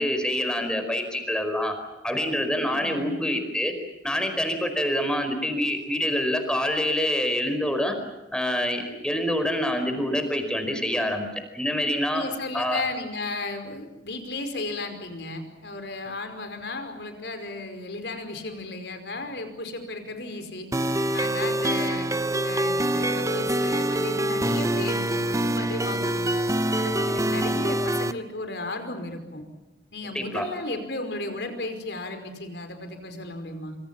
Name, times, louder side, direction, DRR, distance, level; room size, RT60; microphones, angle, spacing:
voice 1, 0.0-1.7 2.0-3.7 4.0-7.9 8.3-11.3 11.5-12.2 12.5-12.8 30.1-30.5, equal, 5° left, 6 dB, 4.9 m, -26 dB
voice 2, 2.7-3.2 12.1-20.7 21.1-22.1 22.4-26.3 26.8-29.4 29.9-33.8, left 2 dB, 70° left, 7 dB, 5.2 m, -34 dB
sound 1, 20.7-28.1, right 1 dB, 20° right, 0.8 m, -25 dB
27.0 x 26.0 x 7.4 m, 1.0 s
head